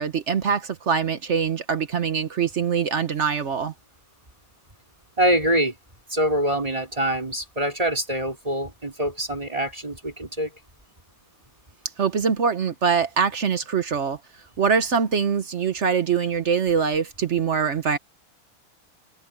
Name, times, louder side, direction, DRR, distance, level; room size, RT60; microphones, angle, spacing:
voice 1, 0.0-3.7 12.0-14.2 14.6-18.0, right 6 dB, 50° right, 0.9 m, -23 dB
voice 2, 5.2-5.8 6.1-10.5, right 1 dB, 15° right, 4.1 m, -24 dB
omnidirectional pair, 2.3 m